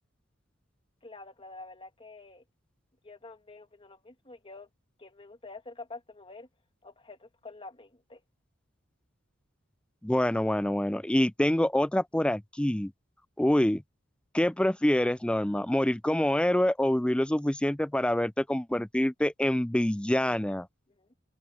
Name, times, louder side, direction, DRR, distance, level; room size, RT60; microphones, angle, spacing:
voice 1, 1.0-2.4 3.0-4.7 5.0-6.5 6.8-8.2 21.0-21.1, left 3 dB, 30° left, 2.7 m, -47 dB
voice 2, 10.0-12.9 13.4-13.8 14.3-20.7, left 1 dB, 5° left, 0.4 m, -26 dB
open air
head